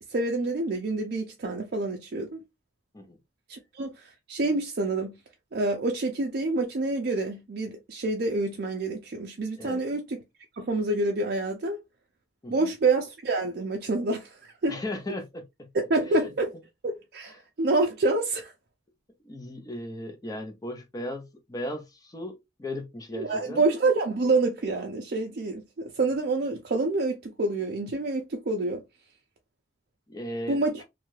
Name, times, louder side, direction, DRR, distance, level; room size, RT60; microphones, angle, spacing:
voice 1, 0.1-2.4 3.5-5.1 5.5-10.2 10.6-11.8 12.5-14.7 15.7-16.6 16.8-18.5 23.1-28.8 30.5-30.7, right 2 dB, 50° right, 0.4 m, -27 dB
voice 2, 14.7-15.7 19.2-23.6 30.1-30.8, left 1 dB, 20° left, 0.5 m, -37 dB
2.6 x 2.3 x 3.1 m
head